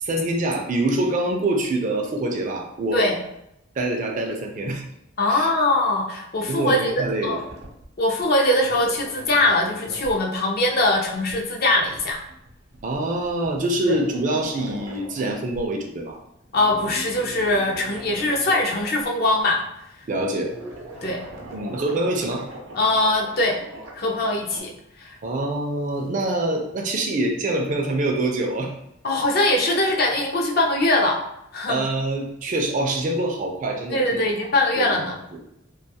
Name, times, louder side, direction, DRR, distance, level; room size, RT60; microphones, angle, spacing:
voice 1, 0.0-3.1 3.8-4.8 5.3-5.5 6.4-7.4 12.8-16.2 20.1-20.5 21.5-22.5 25.2-28.7 31.7-35.4, right 2 dB, 40° right, 2 dB, 0.4 m, -25 dB
voice 2, 5.2-7.4 8.0-12.2 13.9-14.0 16.5-19.6 21.0-21.2 22.8-23.6 23.9-24.7 25.0-25.2 29.0-31.2 31.5-31.9 33.9-35.2, left 1 dB, 50° left, 0 dB, 0.5 m, -22 dB
sound 1, 6.8-7.9 8.2-8.3 8.5-15.7 16.0-16.2 16.4-19.6 20.4-24.6, right 1 dB, 85° right, 0.6 m, -41 dB
2.3 x 2.3 x 2.7 m, 0.80 s
head